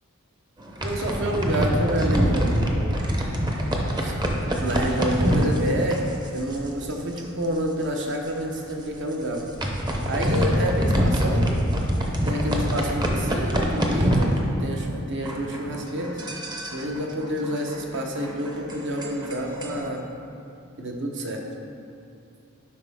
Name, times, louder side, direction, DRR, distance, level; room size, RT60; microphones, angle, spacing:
sound 1, 0.6-6.9 7.2-7.5 7.7-7.8 8.4-8.6 9.2-15.0 15.2-19.9, equal, 20° right, 0.7 m, -25 dB
voice 1, 0.8-3.0 4.0-4.2 4.6-9.5 10.0-11.7 12.2-16.2 16.7-20.0 20.8-21.5, equal, 55° right, 1 dB, 0.9 m, -28 dB
11.5 x 5.4 x 3.5 m, 2.6 s
head